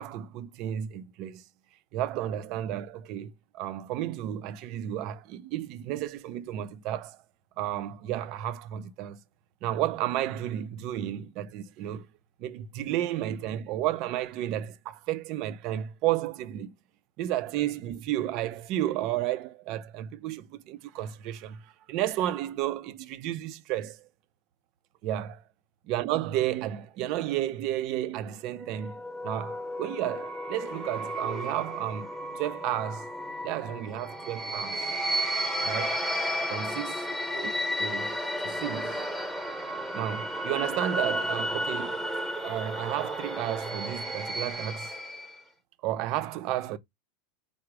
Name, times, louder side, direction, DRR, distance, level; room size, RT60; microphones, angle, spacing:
voice 1, 0.0-1.4 1.9-7.2 7.6-9.2 9.6-12.1 12.4-16.7 17.2-24.1 25.0-25.4 25.9-33.1 33.4-34.8 35.6-36.0 36.5-37.0 37.3-37.5 37.8-38.2 38.4-39.1 39.9-42.1 42.4-44.9 45.8-46.8, right 12 dB, 45° right, 0.5 m, -32 dB
sound 1, 28.6-45.4, equal, ahead, 0.9 m, -33 dB
4.8 x 2.0 x 4.6 m
supercardioid pair, 155°, 0 cm